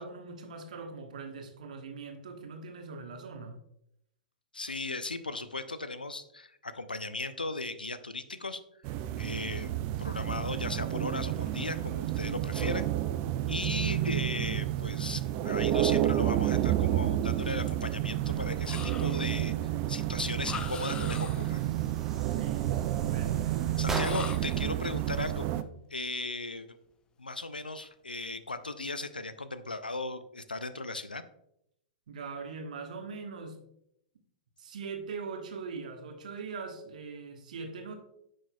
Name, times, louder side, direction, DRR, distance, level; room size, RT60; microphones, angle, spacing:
voice 1, 0.0-3.6 22.3-24.1 32.1-33.6 34.6-37.9, right 4 dB, 60° right, 4 dB, 1.3 m, -41 dB
voice 2, 4.5-8.6 9.2-12.9 13.5-21.6 23.8-25.5 25.9-26.7 27.2-31.2, left 3 dB, 80° left, 13 dB, 0.5 m, -37 dB
sound 1, 8.8-25.6, right 13 dB, 35° right, 0.4 m, -30 dB
sound 2, 18.6-19.4 20.4-21.6 23.9-24.7, left 6 dB, 20° left, 0.6 m, -41 dB
sound 3, 21.4-24.5, right 2 dB, 10° right, 1.1 m, -40 dB
9.7 x 6.3 x 2.3 m, 0.77 s
figure-of-eight pair, 105°, 5 cm